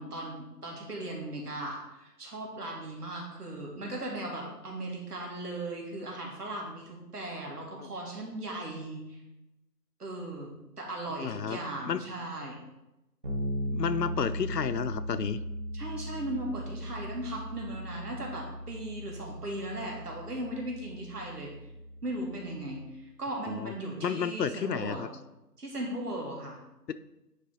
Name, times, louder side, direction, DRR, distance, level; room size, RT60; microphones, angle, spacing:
voice 1, 0.0-9.2 10.0-12.6 15.7-21.5 22.0-25.0 25.6-26.6, right 1 dB, 65° right, -1 dB, 2.2 m, -37 dB
voice 2, 11.2-11.6 11.9-12.0 13.7-15.4 23.5-23.7 24.0-25.1, left 7 dB, 75° left, 13 dB, 0.6 m, -31 dB
Bass guitar, 13.2-22.9, equal, 30° right, 1.3 m, -38 dB
9.7 x 3.3 x 3.8 m, 0.94 s
figure-of-eight pair, 170°, 49 cm